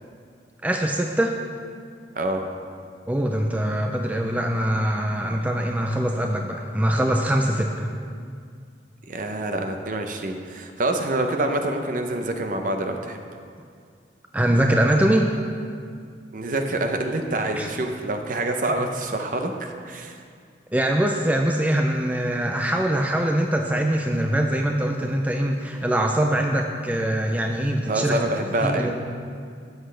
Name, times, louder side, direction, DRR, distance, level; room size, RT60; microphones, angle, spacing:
voice 1, 0.6-1.4 3.1-7.9 14.3-15.3 17.5-17.7 20.7-28.2 28.6-29.0, right 1 dB, 10° right, 2 dB, 0.4 m, -23 dB
voice 2, 9.1-13.2 16.3-20.2 27.9-29.0, right 2 dB, 45° right, 5 dB, 0.7 m, -26 dB
12.5 x 8.0 x 3.4 m, 2.2 s
head